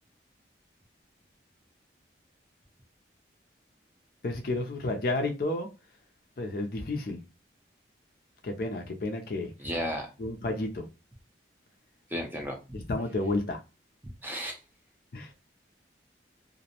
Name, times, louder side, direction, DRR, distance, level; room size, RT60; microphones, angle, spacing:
voice 1, 4.2-5.7 6.4-7.2 8.4-9.5 10.2-10.9 12.7-13.6 15.1-15.4, left 2 dB, 50° left, 0.4 m, -31 dB
voice 2, 9.6-10.1 12.1-12.8 14.0-14.6, equal, 10° right, 0.5 m, -34 dB
2.5 x 2.0 x 2.7 m
head